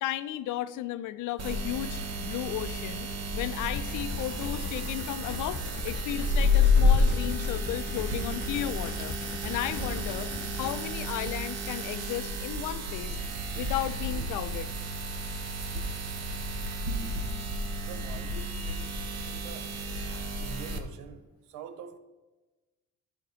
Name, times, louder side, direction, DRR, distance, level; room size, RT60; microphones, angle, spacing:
voice 1, 0.0-9.1 9.4-13.2 13.5-14.7, left 13 dB, 85° left, 0.5 m, -34 dB
sound 1, 1.4-20.8, left 2 dB, 55° right, 1.0 m, -30 dB
sound 2, 3.7-10.8, left 5 dB, 40° left, 0.6 m, -41 dB
voice 2, 17.8-18.9 19.3-19.8 20.4-22.0, right 8 dB, 85° right, 0.6 m, -45 dB
11.5 x 5.0 x 3.1 m
cardioid pair, 90°, 30 cm